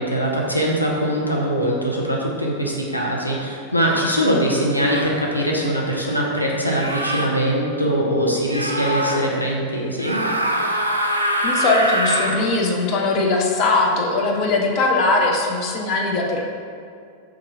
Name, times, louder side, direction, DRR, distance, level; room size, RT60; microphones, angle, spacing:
voice 1, 0.0-10.2, equal, 90° left, -3 dB, 0.5 m, -22 dB
sound 1, 3.3-3.5 4.7-5.2 6.6-7.3 8.5-9.2 10.0-12.4, right 1 dB, 80° right, 0.4 m, -24 dB
voice 2, 11.4-16.4, left 3 dB, 40° left, 0 dB, 0.6 m, -20 dB
3.6 x 2.9 x 4.7 m, 2.3 s
figure-of-eight pair, 90°, 0 cm